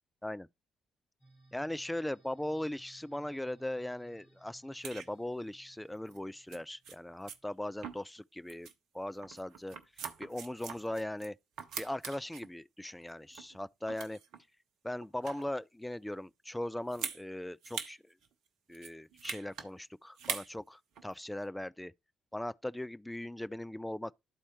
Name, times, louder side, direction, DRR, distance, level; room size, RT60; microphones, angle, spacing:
sound 1, 1.2-7.8, right 2 dB, 65° left, 3.9 m, -64 dB
voice 1, 1.5-8.7 8.9-9.8 10.2-11.4 11.8-14.2 14.8-18.1 18.7-21.9 22.3-24.1, left 1 dB, 5° left, 0.3 m, -39 dB
sound 2, 4.8-5.1 6.1-6.2 6.5-6.6 6.8-7.0 7.3-7.4 7.8-8.2 8.5-8.7 9.2-11.3 11.6-12.5 13.0-13.6 13.9-14.4 15.0-15.5 16.9-17.2 17.6-18.0 18.2-18.3 18.7-19.7 20.2-20.5 21.0-21.1, right 7 dB, 60° right, 0.8 m, -42 dB
12.5 x 4.2 x 3.0 m
figure-of-eight pair, 45°, 0 cm